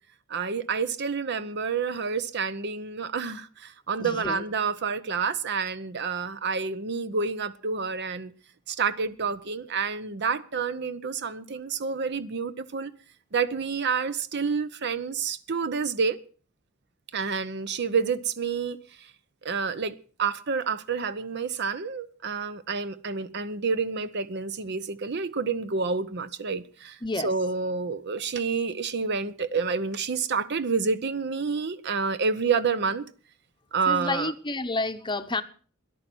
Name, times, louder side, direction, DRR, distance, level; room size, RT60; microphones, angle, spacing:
voice 1, 0.3-8.3 8.7-12.9 13.3-16.2 17.1-18.8 19.4-19.9 20.2-27.0 27.2-33.0 33.7-34.3, right 5 dB, 55° right, 0.8 m, -28 dB
voice 2, 4.0-4.5 27.0-27.3 33.9-35.4, left 3 dB, 25° left, 0.8 m, -30 dB
13.5 x 11.0 x 6.1 m
head